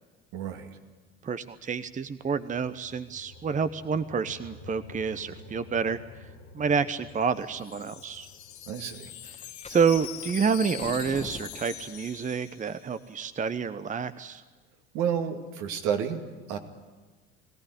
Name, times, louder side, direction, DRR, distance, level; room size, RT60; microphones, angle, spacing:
voice 1, 0.3-0.7 8.7-9.1 14.9-16.6, right 8 dB, 65° right, 4 dB, 2.5 m, -30 dB
voice 2, 1.2-6.3 6.5-8.3 9.7-14.4, right 6 dB, 25° right, 12 dB, 0.9 m, -28 dB
sound 1, 1.4-11.6, left 3 dB, 55° left, 2.9 m, -51 dB
Wind chime, 7.1-13.1, left 12 dB, 80° left, 1.5 m, -43 dB
sound 2, 9.3-12.2, left 3 dB, 20° left, 1.8 m, -44 dB
21.5 x 17.5 x 9.9 m, 1.3 s
hypercardioid pair, 65°, 32 cm